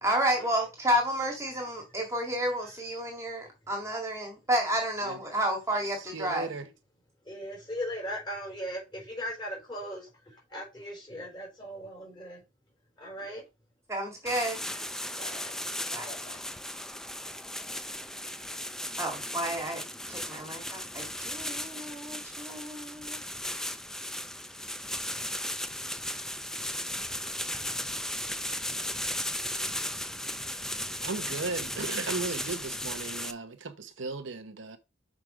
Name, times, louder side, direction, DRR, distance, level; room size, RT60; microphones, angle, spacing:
voice 1, 0.0-6.5 13.9-14.6 15.9-16.1 19.0-19.8 20.1-23.2 23.6-23.7, right 1 dB, 15° right, 1.9 m, -31 dB
voice 2, 5.9-6.7 31.0-34.8, right 3 dB, 65° right, 0.8 m, -36 dB
voice 3, 7.2-12.4 13.0-13.4 14.2-14.3 14.6-14.8 15.2-15.6 15.9-16.4, equal, 25° left, 4.4 m, -39 dB
sound 1, 14.3-33.3, left 1 dB, 5° left, 0.4 m, -36 dB
6.1 x 4.9 x 5.0 m
head